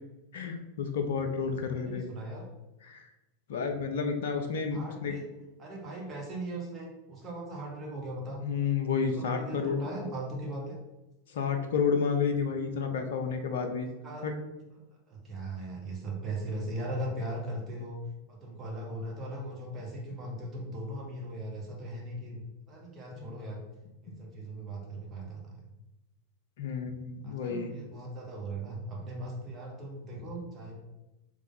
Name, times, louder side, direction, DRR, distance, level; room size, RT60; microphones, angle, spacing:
voice 1, 0.3-2.0 2.9-3.0 3.5-5.1 8.4-9.8 11.3-13.9 14.2-14.3 23.2-23.3 26.6-27.7, left 6 dB, 60° left, 5 dB, 0.5 m, -30 dB
voice 2, 1.4-2.4 4.7-5.3 5.6-8.4 9.1-10.8 14.0-14.3 15.1-18.0 18.3-23.6 24.0-25.7 27.2-30.8, right 1 dB, 25° right, -2 dB, 1.2 m, -39 dB
3.6 x 3.3 x 3.8 m, 1.0 s
figure-of-eight pair, 90°, 0 cm